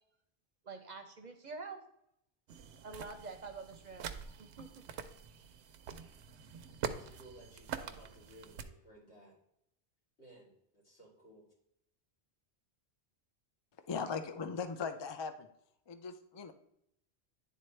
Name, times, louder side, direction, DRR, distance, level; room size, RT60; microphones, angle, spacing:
voice 1, 0.6-1.8 2.8-4.7, right 4 dB, 50° right, 7 dB, 0.7 m, -47 dB
sound 1, 2.5-8.6, right 7 dB, 90° right, 0.9 m, -45 dB
voice 2, 6.9-9.4 10.2-11.5, right 1 dB, 85° left, -7 dB, 3.4 m, -57 dB
voice 3, 13.9-15.5 15.9-16.5, left 5 dB, 45° left, 9 dB, 0.3 m, -39 dB
10.5 x 3.9 x 3.2 m, 0.76 s
omnidirectional pair, 1.1 m